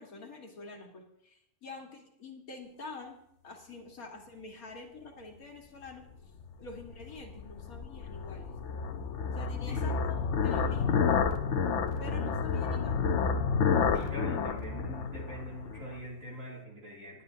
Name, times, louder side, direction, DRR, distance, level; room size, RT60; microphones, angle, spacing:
voice 1, 0.0-3.2 3.4-6.1 6.6-8.5 9.3-11.1 12.0-13.0, left 3 dB, 75° left, 1 dB, 2.4 m, -46 dB
sound 1, 6.4-16.0, left 6 dB, 60° left, 1.1 m, -30 dB
voice 2, 9.7-10.0 12.0-12.1 13.9-17.2, equal, 65° right, -2 dB, 3.3 m, -43 dB
19.5 x 10.0 x 2.8 m, 0.77 s
omnidirectional pair, 1.5 m